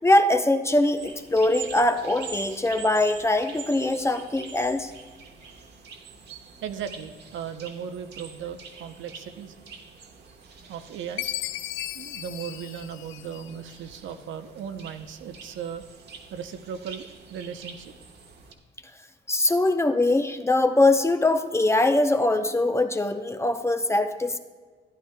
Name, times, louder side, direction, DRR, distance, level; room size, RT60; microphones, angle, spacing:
voice 1, 0.0-4.9 19.3-24.4, left 2 dB, 15° left, 7 dB, 0.6 m, -22 dB
sound 1, 1.0-18.5, right 5 dB, 55° right, 1.2 m, -45 dB
voice 2, 6.6-9.5 10.7-11.3 11.9-15.8 16.3-17.9, right 8 dB, 75° right, 9 dB, 0.7 m, -37 dB
Chime, 11.2-13.7, left 13 dB, 75° left, 0.4 m, -35 dB
12.5 x 10.5 x 2.2 m, 1.5 s
cardioid pair, 90°, 20 cm